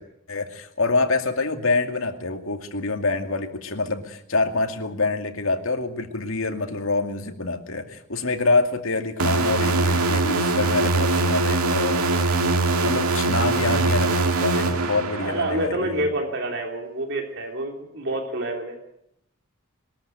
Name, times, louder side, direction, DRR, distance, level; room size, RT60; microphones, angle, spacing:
voice 1, 0.3-12.5 12.8-16.0, left 3 dB, 65° left, 5 dB, 2.4 m, -26 dB
sound 1, 9.2-15.7, right 3 dB, 85° right, 2.1 m, -22 dB
voice 2, 15.2-18.8, right 1 dB, 55° right, 3 dB, 3.0 m, -28 dB
22.5 x 13.5 x 9.3 m, 0.74 s
head